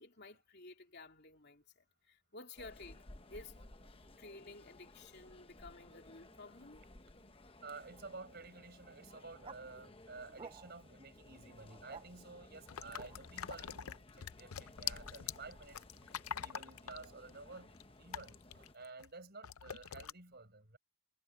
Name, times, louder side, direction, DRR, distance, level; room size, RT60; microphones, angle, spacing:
voice 1, 0.0-3.0 3.3-3.6 4.2-6.9 14.5-14.6 16.4-16.7, left 2 dB, 50° left, 3.1 m, -54 dB
sound 1, 2.6-18.7, left 2 dB, 25° left, 1.0 m, -58 dB
voice 2, 7.6-15.8 16.4-20.8, right 3 dB, 50° right, 5.7 m, -52 dB
sound 2, 9.4-9.6 10.4-10.9 11.6-12.1 13.0-13.2, right 4 dB, 25° right, 0.5 m, -52 dB
sound 3, 12.7-19.1 19.4-20.1, left 9 dB, 85° left, 0.6 m, -44 dB
head